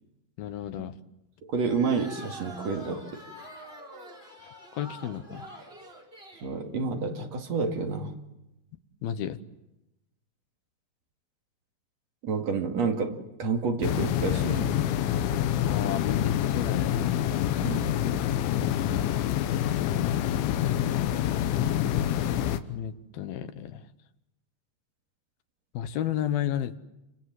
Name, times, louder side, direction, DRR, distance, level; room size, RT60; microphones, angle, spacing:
voice 1, 0.4-1.0 4.7-5.5 9.0-9.4 15.7-17.0 22.7-23.8 25.7-26.8, left 10 dB, 70° left, 11 dB, 2.6 m, -32 dB
voice 2, 1.5-3.2 6.4-8.1 12.2-14.8 17.6-18.3, right 4 dB, 45° right, 3 dB, 2.8 m, -29 dB
sound 1, 1.7-6.5, equal, 15° right, 3.7 m, -45 dB
sound 2, 13.8-22.6, left 11 dB, 85° left, 3.5 m, -26 dB
29.5 x 26.0 x 7.7 m, 0.93 s
omnidirectional pair, 5.2 m